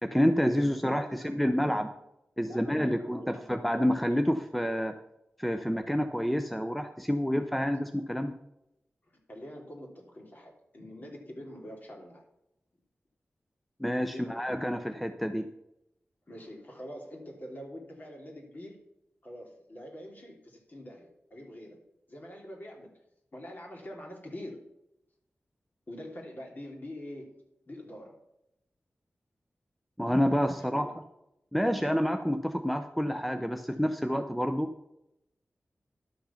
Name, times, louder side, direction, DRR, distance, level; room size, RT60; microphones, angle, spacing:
voice 1, 0.0-1.9 2.4-5.0 5.4-8.3 13.8-15.5 30.0-30.9 31.5-34.7, equal, ahead, 8 dB, 0.6 m, -28 dB
voice 2, 0.5-1.1 2.4-3.4 7.6-7.7 9.0-12.2 14.0-14.5 16.3-18.8 19.2-21.8 22.1-22.9 23.3-24.6 25.9-28.2 30.5-30.9, left 1 dB, 45° left, 0 dB, 3.0 m, -45 dB
11.5 x 6.5 x 5.7 m, 0.85 s
wide cardioid pair, 85°, 4 cm